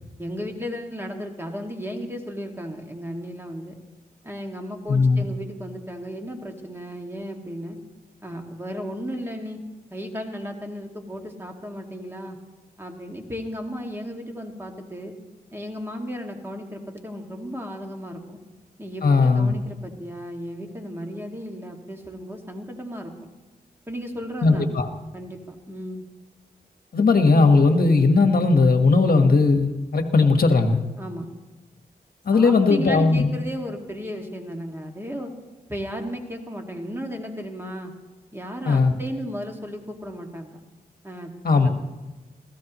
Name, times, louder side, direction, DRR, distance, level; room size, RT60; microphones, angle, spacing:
voice 1, 0.2-3.8 4.2-7.8 8.2-9.6 9.9-12.4 12.8-15.1 15.5-18.4 18.8-23.1 23.9-24.7 25.1-26.0 31.0-31.3 32.3-35.3 35.7-37.9 38.3-40.6 41.0-41.7, equal, 15° right, 2 dB, 2.2 m, -34 dB
voice 2, 4.9-5.2 19.0-19.5 24.4-24.9 26.9-30.8 32.2-33.3 38.6-38.9 41.4-41.7, left 3 dB, 65° left, 5 dB, 1.5 m, -18 dB
26.5 x 16.5 x 3.1 m, 1.1 s
wide cardioid pair, 80°, 16 cm